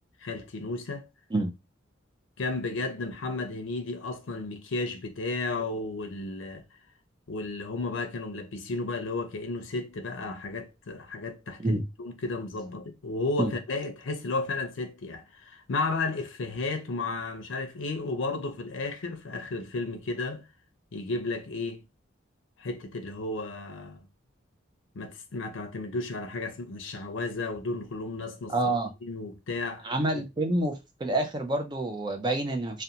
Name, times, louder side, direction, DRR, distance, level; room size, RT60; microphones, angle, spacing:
voice 1, 0.2-1.1 2.4-6.6 7.3-20.4 20.9-21.8 22.6-24.0 24.9-28.5 29.0-30.2, left 3 dB, 80° left, 0.5 m, -33 dB
voice 2, 28.5-28.9 29.8-30.8 31.0-32.8, right 2 dB, 20° right, 0.4 m, -27 dB
2.4 x 2.2 x 2.7 m
head